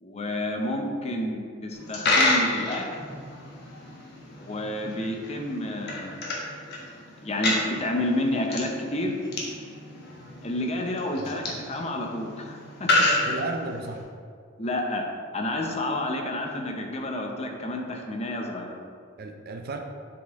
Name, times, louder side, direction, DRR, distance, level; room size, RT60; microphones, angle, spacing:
voice 1, 0.0-2.9 4.4-6.2 7.2-9.2 10.4-12.9 14.6-15.0 15.3-18.8, left 1 dB, 30° left, 2 dB, 0.7 m, -30 dB
Coin (dropping), 1.7-14.0, left 2 dB, 55° left, 1.1 m, -30 dB
voice 2, 13.1-14.1 19.2-19.8, right 2 dB, 50° right, 4 dB, 0.5 m, -34 dB
7.6 x 4.1 x 3.5 m, 2.1 s
head